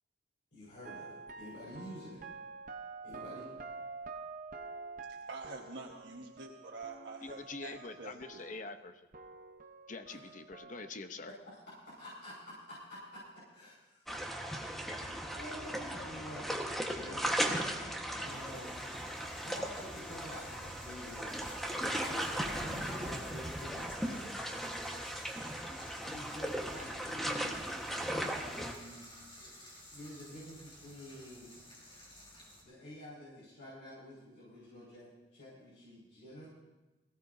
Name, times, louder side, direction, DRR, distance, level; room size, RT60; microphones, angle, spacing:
voice 1, 0.5-2.2 3.0-3.5 11.2-11.6 11.8-14.1 14.9-18.8 19.4-21.5 22.1-24.4 26.0-29.5 29.9-31.5 32.6-36.5, left 1 dB, 85° left, 5.2 m, -49 dB
sound 1, 0.8-8.9 9.1-10.9, right 4 dB, 50° right, 0.8 m, -48 dB
voice 2, 5.0-8.5, right 3 dB, 90° right, 1.3 m, -47 dB
voice 3, 7.2-9.1 9.9-11.3, left 3 dB, 45° left, 0.8 m, -45 dB
sound 2, 14.1-28.7, equal, ahead, 1.3 m, -37 dB
sound 3, 18.3-32.6, left 1 dB, 30° left, 4.5 m, -54 dB
22.0 x 16.0 x 2.7 m
head